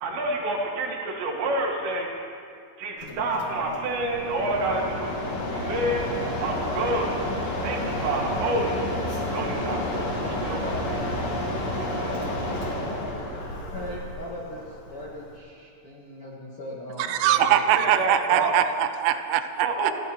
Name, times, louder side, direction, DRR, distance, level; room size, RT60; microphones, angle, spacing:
voice 1, 0.0-2.1 2.8-5.1 5.5-6.0 6.4-7.2 7.4-8.9 9.3-11.3 11.8-12.2 17.8-18.5 19.6-19.9, right 2 dB, 70° right, -2 dB, 4.2 m, -28 dB
Mechanisms, 3.0-15.4, left 1 dB, 45° left, 2.4 m, -30 dB
voice 2, 13.7-17.9, left 1 dB, 75° left, -5 dB, 1.3 m, -39 dB
voice 3, 17.1-19.9, right 10 dB, 85° right, 9 dB, 3.3 m, -22 dB
28.5 x 14.0 x 3.1 m, 2.4 s
omnidirectional pair, 5.5 m